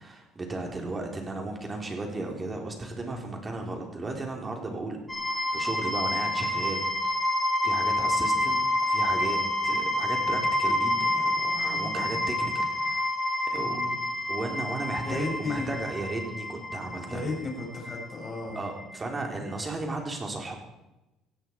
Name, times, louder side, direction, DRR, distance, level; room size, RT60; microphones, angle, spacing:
voice 1, 0.0-5.0 5.3-7.2 7.6-9.4 9.6-13.0 13.5-13.9 14.3-17.2 18.5-20.5, right 2 dB, 20° right, 2 dB, 4.1 m, -35 dB
sound 1, 5.1-19.0, left 1 dB, 10° left, 5.7 m, -28 dB
voice 2, 13.6-13.9 15.0-15.8 17.1-18.6, left 3 dB, 30° left, 0 dB, 6.4 m, -34 dB
17.5 x 16.5 x 4.8 m, 0.96 s
cardioid pair, 130°, 0 cm